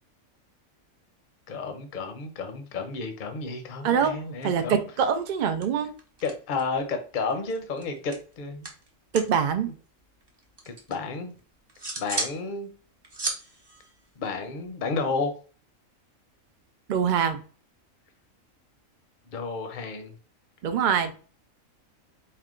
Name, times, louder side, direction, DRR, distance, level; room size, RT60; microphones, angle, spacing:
voice 1, 1.5-4.8 6.2-8.7 10.7-11.3 12.0-12.7 14.2-15.3 19.3-20.1, left 4 dB, 45° left, 0.7 m, -31 dB
voice 2, 3.8-5.9 9.1-9.7 16.9-17.4 20.6-21.1, right 7 dB, 70° right, 0.4 m, -24 dB
sound 1, 5.1-5.4 5.6-6.8 7.1-9.4 9.7-11.0 11.4-12.4 12.7-14.8, right 2 dB, 25° right, 0.7 m, -36 dB
4.6 x 2.2 x 3.6 m
omnidirectional pair, 1.4 m